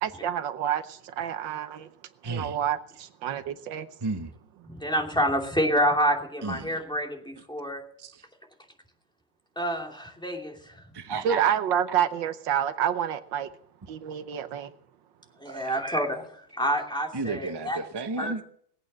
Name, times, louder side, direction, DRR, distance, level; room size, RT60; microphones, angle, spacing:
voice 1, 0.0-1.9 2.2-3.9 11.2-13.5 13.9-14.7, right 9 dB, 70° right, 1.5 m, -28 dB
voice 2, 2.2-2.6 4.0-4.3 6.4-6.8 8.0-8.2 10.9-11.5 15.5-15.8 17.1-18.4, right 3 dB, 35° right, 0.4 m, -33 dB
voice 3, 4.7-7.8 9.6-10.8 15.4-17.8 18.2-18.3, equal, ahead, 2.6 m, -28 dB
20.5 x 8.8 x 7.4 m
omnidirectional pair, 2.1 m